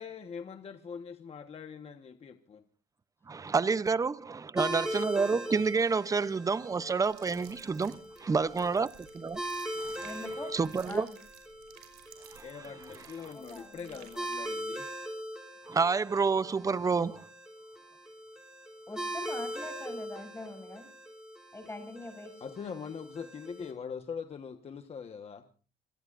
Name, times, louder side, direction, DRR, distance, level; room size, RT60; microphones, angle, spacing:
voice 1, 0.0-2.6 12.4-14.9 21.6-21.7 22.4-25.4, left 6 dB, 35° left, 1.3 m, -42 dB
voice 2, 3.3-8.9 9.2-9.4 9.8-10.1 10.5-11.1 12.3-12.4 15.7-17.3, right 4 dB, 20° right, 0.6 m, -29 dB
sound 1, 4.6-23.7, right 1 dB, 5° right, 6.1 m, -41 dB
sound 2, 7.1-14.4, right 10 dB, 85° right, 5.8 m, -56 dB
voice 3, 10.0-10.5 10.9-11.2 13.3-14.0 18.9-20.9 21.5-22.4, left 2 dB, 15° left, 6.9 m, -43 dB
26.5 x 18.5 x 2.5 m
cardioid pair, 110°, 17 cm